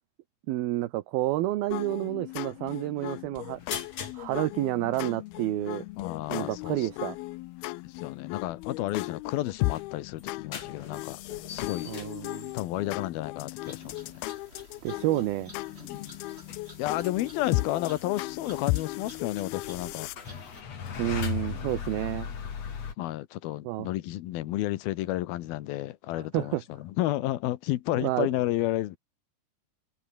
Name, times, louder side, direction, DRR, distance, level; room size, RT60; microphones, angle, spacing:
voice 1, 0.5-3.6 4.1-5.9 6.3-7.2 11.9-12.5 14.8-15.5 21.0-22.3 23.6-23.9 26.3-26.6 28.0-28.3, right 16 dB, 70° right, 2.5 m, -29 dB
sound 1, 1.7-20.2, left 21 dB, 90° left, 2.2 m, -36 dB
sound 2, 3.5-4.2 4.6-4.7 4.9-5.1 6.5-6.6 7.2-7.5 8.1-8.5 8.9-9.0 9.2-12.8 13.2-13.5 14.4-14.5 14.7-14.9 15.4-15.6 15.9-16.1 16.4-17.2 17.5-17.7 18.8-18.9 19.2-22.9, left 7 dB, 40° left, 3.4 m, -38 dB
voice 2, 6.0-6.9 7.8-11.2 11.5-11.9 12.5-14.1 15.8-16.2 16.8-20.1 23.0-29.0, left 15 dB, 75° left, 2.6 m, -31 dB
sound 3, 13.6-20.6, right 1 dB, 15° right, 6.4 m, -52 dB
omnidirectional pair, 5.0 m